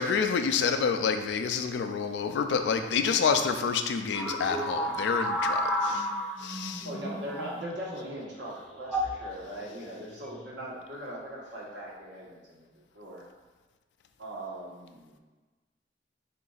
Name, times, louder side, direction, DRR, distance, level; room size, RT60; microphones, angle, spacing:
voice 1, 0.0-6.1 6.4-6.9, left 5 dB, 80° left, 7 dB, 0.3 m, -28 dB
sound 1, 4.1-8.0 8.8-9.2 10.1-10.5, equal, 5° left, 0.4 m, -32 dB
voice 2, 6.8-12.7 12.9-13.2 14.2-15.2, right 1 dB, 80° right, -4 dB, 1.1 m, -40 dB
3.8 x 2.5 x 3.8 m, 1.3 s
head